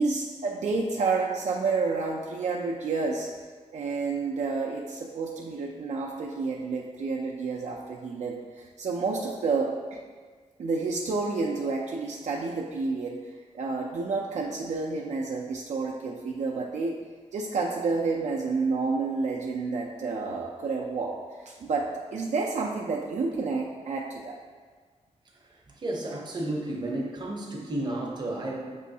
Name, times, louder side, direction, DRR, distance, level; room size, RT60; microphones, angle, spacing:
voice 1, 0.0-3.3 3.7-10.0 10.6-13.2 13.5-17.0 17.3-21.1 21.5-24.4, right 4 dB, 70° right, -2 dB, 0.4 m, -29 dB
voice 2, 25.8-28.7, right 1 dB, 35° right, -2 dB, 0.7 m, -32 dB
6.2 x 3.1 x 2.7 m, 1.5 s
wide cardioid pair, 155°, 12 cm